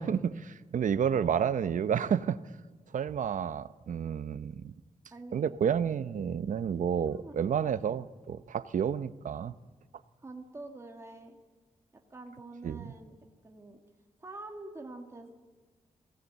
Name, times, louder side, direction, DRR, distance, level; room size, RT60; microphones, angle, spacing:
voice 1, 0.0-2.4 2.9-4.7 5.3-9.5 12.6-12.9, right 8 dB, 85° right, 14 dB, 0.8 m, -30 dB
voice 2, 5.1-5.6 7.1-7.4 10.2-11.4 11.9-13.1 13.4-13.8 14.2-15.3, right 2 dB, 20° right, 2 dB, 1.6 m, -46 dB
21.5 x 17.5 x 8.2 m, 1.4 s
wide cardioid pair, 170°, 13 cm